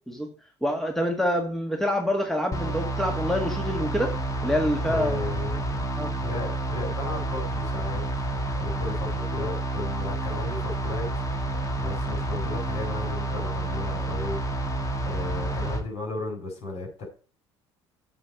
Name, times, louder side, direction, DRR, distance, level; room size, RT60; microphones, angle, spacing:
voice 1, 0.6-4.2 4.4-5.3 6.0-6.1 11.8-11.9, equal, ahead, 2 dB, 1.9 m, -26 dB
sound 1, 2.5-15.8, right 2 dB, 25° left, 1.9 m, -29 dB
voice 2, 4.9-5.6 6.2-8.0 8.6-11.1 11.4-14.8 15.0-17.0, left 2 dB, 55° left, 0 dB, 5.9 m, -35 dB
8.2 x 6.8 x 5.4 m, 0.37 s
hypercardioid pair, 65°, 13 cm